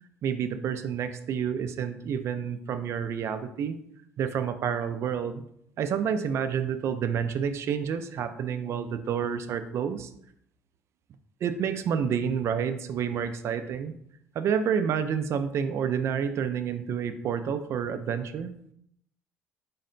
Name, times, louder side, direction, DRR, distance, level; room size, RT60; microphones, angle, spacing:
voice 1, 0.2-3.8 4.2-5.4 5.8-10.1 11.4-13.9 14.3-18.5, right 7 dB, 55° right, 10 dB, 0.4 m, -29 dB
4.0 x 2.2 x 3.8 m, 0.71 s
supercardioid pair, 85°, 6 cm